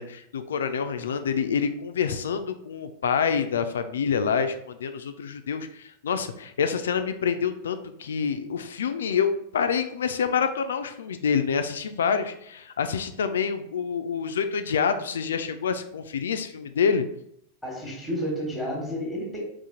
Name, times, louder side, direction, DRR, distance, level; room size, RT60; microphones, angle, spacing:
voice 1, 0.0-17.1, left 6 dB, 65° left, 9 dB, 0.3 m, -27 dB
voice 2, 17.6-19.4, equal, ahead, -2 dB, 1.2 m, -31 dB
4.1 x 2.5 x 3.6 m, 0.74 s
figure-of-eight pair, 90°, 0 cm